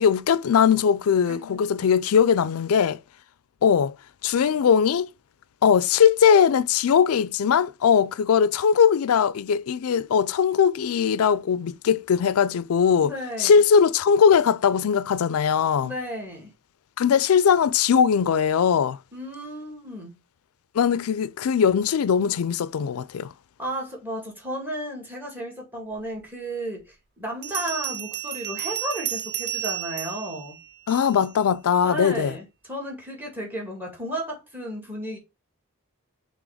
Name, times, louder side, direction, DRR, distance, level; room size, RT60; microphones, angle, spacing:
voice 1, 0.0-3.0 3.6-3.9 4.2-5.1 5.6-13.1 13.4-15.9 17.0-19.0 20.7-23.3 30.9-32.3, left 7 dB, 75° left, 0.4 m, -20 dB
voice 2, 1.3-1.6 13.0-13.6 15.8-16.5 19.1-20.1 23.6-30.6 31.8-35.2, equal, 10° right, 2.1 m, -33 dB
Bell, 26.2-26.3 27.4-31.3, right 12 dB, 50° right, 0.5 m, -32 dB
6.1 x 3.4 x 4.9 m
head